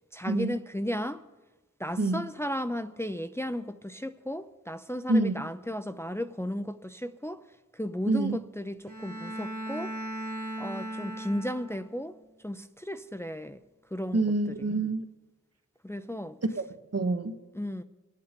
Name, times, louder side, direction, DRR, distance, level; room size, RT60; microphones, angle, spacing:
voice 1, 0.1-1.2 1.8-7.4 7.7-9.9 10.6-12.2 12.4-13.6 13.9-14.2 14.6-14.7 15.8-16.4 17.5-17.8, equal, 10° left, 0.6 m, -34 dB
voice 2, 2.0-2.3 5.1-5.5 8.1-8.4 14.1-15.0 16.5-16.6 16.9-17.4, right 2 dB, 55° right, 1.1 m, -27 dB
Bowed string instrument, 8.9-12.1, right 1 dB, 75° right, 1.9 m, -37 dB
24.0 x 9.6 x 5.2 m
wide cardioid pair, 45°, 31 cm